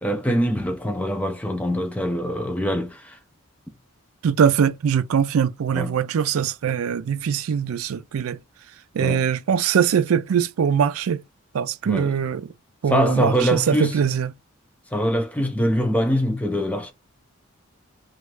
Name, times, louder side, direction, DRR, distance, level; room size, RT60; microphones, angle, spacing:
voice 1, 0.0-3.2 5.7-6.0 9.0-9.2 11.9-12.1 12.9-14.0 14.9-16.9, equal, 5° left, 0.4 m, -23 dB
voice 2, 4.2-8.4 8.9-11.2 11.5-12.5 12.8-14.3, right 7 dB, 85° right, 0.4 m, -22 dB
3.1 x 2.4 x 3.2 m
head